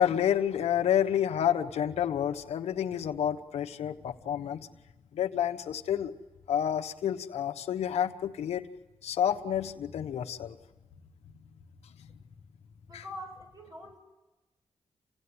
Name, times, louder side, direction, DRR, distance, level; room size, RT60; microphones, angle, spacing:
voice 1, 0.0-4.7 5.1-6.1 6.5-8.7 9.0-10.6 12.0-12.2 12.9-13.0, left 9 dB, 90° left, 5 dB, 1.2 m, -29 dB
voice 2, 12.9-14.0, left 1 dB, 35° right, 2 dB, 7.2 m, -44 dB
29.0 x 16.5 x 9.8 m, 1.2 s
cardioid pair, 70°, 10 cm